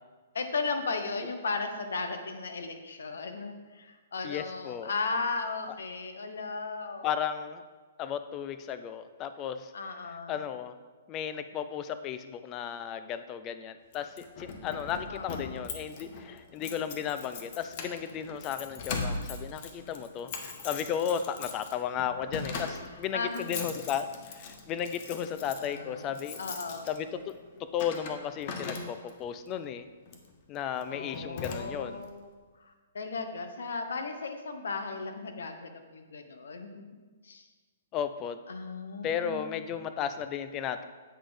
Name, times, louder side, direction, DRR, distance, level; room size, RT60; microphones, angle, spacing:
voice 1, 0.3-7.1 9.7-10.4 15.1-15.7 23.1-23.6 25.5-26.1 26.4-26.9 30.9-32.3 32.6-37.5 38.5-39.7, left 4 dB, 85° left, 7 dB, 0.9 m, -36 dB
voice 2, 4.2-4.9 7.0-7.6 8.0-9.7 10.3-10.7 11.1-26.4 26.9-29.9 30.5-32.0 37.9-38.4 39.0-40.8, left 8 dB, 25° left, 11 dB, 0.4 m, -34 dB
Keys jangling, 13.9-29.3 30.1-30.3 30.8-30.9 31.1-32.0, left 4 dB, 40° left, 0.8 m, -41 dB
7.9 x 4.1 x 4.9 m, 1.4 s
hypercardioid pair, 150°, 0 cm